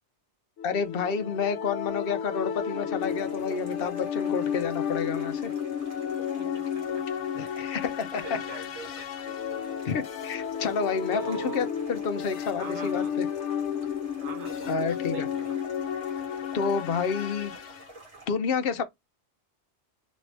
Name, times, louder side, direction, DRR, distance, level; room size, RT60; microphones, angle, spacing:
sound 1, 0.6-17.8, left 8 dB, 85° left, 0.9 m, -32 dB
voice 1, 0.6-5.5 7.4-8.6 9.8-13.3 14.7-15.3 16.5-17.5 18.3-18.8, left 5 dB, 60° left, 0.8 m, -30 dB
sound 2, 3.0-18.3, right 2 dB, 35° right, 1.5 m, -50 dB
voice 2, 6.4-7.0 7.4-7.5 8.2-9.1 11.1-11.6 12.6-13.1 14.2-15.5, right 3 dB, 90° right, 1.3 m, -41 dB
3.1 x 2.7 x 3.2 m
omnidirectional pair, 1.2 m